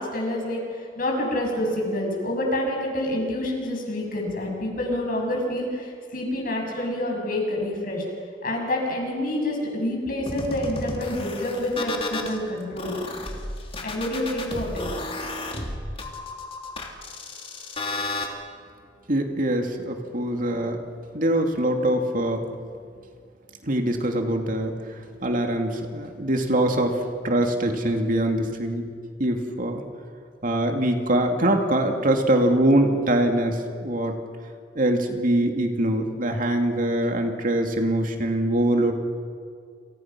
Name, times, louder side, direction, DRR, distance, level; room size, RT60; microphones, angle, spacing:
voice 1, 0.0-8.0 8.4-12.9 13.8-14.9, left 1 dB, 55° left, 0 dB, 7.6 m, -27 dB
sound 1, 10.3-12.3 12.8-18.3, left 2 dB, 35° left, 3.2 m, -33 dB
voice 2, 19.1-20.8 21.1-22.4 23.6-28.9 29.2-29.8 30.4-34.2 34.7-38.9, right 1 dB, 50° right, 4 dB, 2.5 m, -23 dB
29.5 x 28.0 x 6.1 m, 2.2 s
head